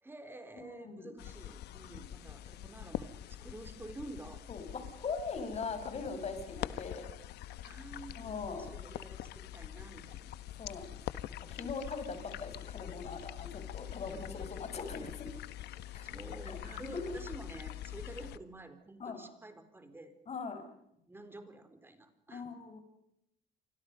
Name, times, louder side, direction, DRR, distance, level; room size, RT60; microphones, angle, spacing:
voice 1, 0.0-4.4 7.6-10.4 14.0-14.8 16.0-20.1 21.1-22.5, right 2 dB, 15° right, 9 dB, 4.0 m, -50 dB
voice 2, 0.5-1.1 4.5-7.1 8.2-8.7 10.6-10.9 11.5-15.3 15.9-16.1 16.4-17.1 19.0-19.2 20.3-20.6 22.3-22.8, left 4 dB, 40° left, 8 dB, 5.7 m, -41 dB
sound 1, 1.2-18.4, left 13 dB, 75° left, 1.2 m, -44 dB
29.0 x 25.5 x 5.4 m, 0.79 s
cardioid pair, 110°, 17 cm